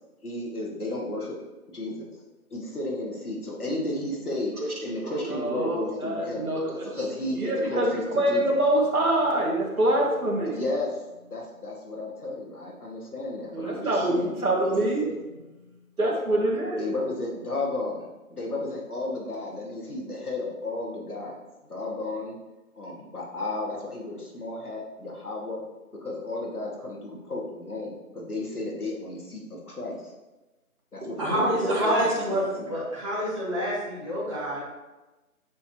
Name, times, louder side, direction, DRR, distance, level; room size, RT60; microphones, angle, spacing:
voice 1, 0.2-1.4 1.7-2.2 2.5-4.5 4.8-6.5 7.0-8.4 10.4-11.0 11.3-15.2 16.8-21.4 21.7-22.4 22.8-25.6 26.0-30.1 30.9-31.6 32.0-32.7, left 2 dB, 75° left, -2 dB, 2.2 m, -33 dB
voice 2, 4.6-7.0 7.4-10.6 13.5-15.1 16.0-16.9 31.2-31.3 31.6-32.1, right 1 dB, 75° right, -2 dB, 1.7 m, -25 dB
voice 3, 31.2-34.6, equal, 20° right, -9 dB, 1.7 m, -28 dB
8.3 x 4.6 x 3.0 m, 1.1 s
figure-of-eight pair, 170°, 44 cm